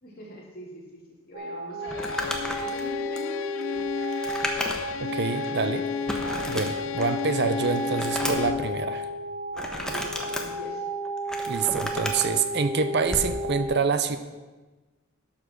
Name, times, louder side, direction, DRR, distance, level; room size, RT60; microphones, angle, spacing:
voice 1, 0.0-2.2 2.6-4.1 9.9-10.9, equal, 45° left, -4 dB, 3.1 m, -43 dB
sound 1, 1.3-13.7, equal, 75° right, 3.4 m, -33 dB
Bowed string instrument, 1.8-8.8, left 7 dB, 70° left, 0.3 m, -33 dB
Crumpling crinkling, 1.9-5.0 5.4-5.5 6.1-7.2 7.6-8.6 9.5-10.4 11.0-12.3 13.0-13.3, left 1 dB, 5° left, 1.0 m, -33 dB
voice 2, 5.0-5.9 6.5-9.1 11.5-14.2, right 5 dB, 50° right, 10 dB, 0.6 m, -26 dB
12.0 x 6.0 x 6.3 m, 1.2 s
head